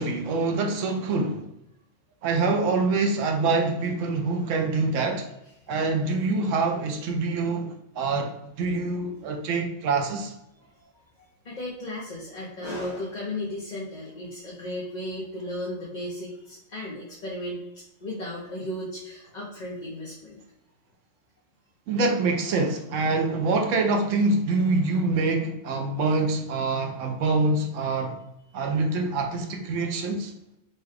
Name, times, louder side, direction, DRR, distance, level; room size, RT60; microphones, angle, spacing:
voice 1, 0.0-1.5 2.2-5.3 5.7-10.3 21.9-28.2 28.5-30.3, right 3 dB, 85° right, 1.0 m, -25 dB
voice 2, 11.4-20.4, left 1 dB, 40° left, 0.9 m, -35 dB
5.5 x 2.3 x 3.3 m
omnidirectional pair, 1.3 m